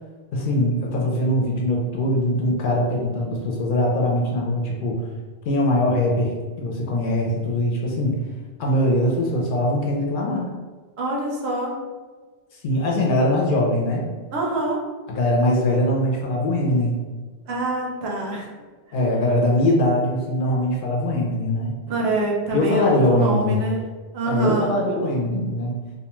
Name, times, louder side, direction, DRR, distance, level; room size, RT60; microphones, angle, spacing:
voice 1, 0.3-5.0 5.5-6.3 6.6-8.2 8.6-10.5 12.6-14.1 15.1-17.0 18.9-21.7 22.5-23.6 24.2-25.7, left 1 dB, 60° left, -2 dB, 0.6 m, -21 dB
voice 2, 11.0-11.7 14.3-14.8 17.5-18.5 21.9-23.8 24.1-24.8, right 2 dB, 75° right, -2 dB, 0.9 m, -25 dB
2.5 x 2.2 x 2.9 m, 1.4 s
omnidirectional pair, 1.1 m